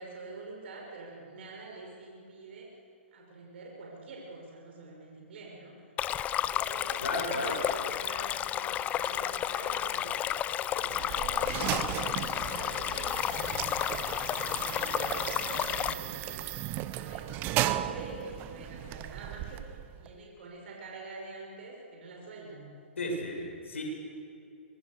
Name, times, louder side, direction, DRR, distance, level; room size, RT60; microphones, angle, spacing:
voice 1, 0.0-2.7 3.1-5.8 6.2-13.6 14.2-16.7 16.9-22.7, right 3 dB, 60° right, -1 dB, 5.9 m, -46 dB
Stream, 6.0-15.9, left 11 dB, 20° left, 0.7 m, -32 dB
voice 2, 7.0-7.6 23.0-23.8, left 1 dB, 85° left, 0 dB, 6.5 m, -33 dB
sound 1, 10.8-20.1, right 14 dB, 30° right, 0.9 m, -36 dB
25.5 x 22.0 x 6.8 m, 2.6 s
hypercardioid pair, 135°, 7 cm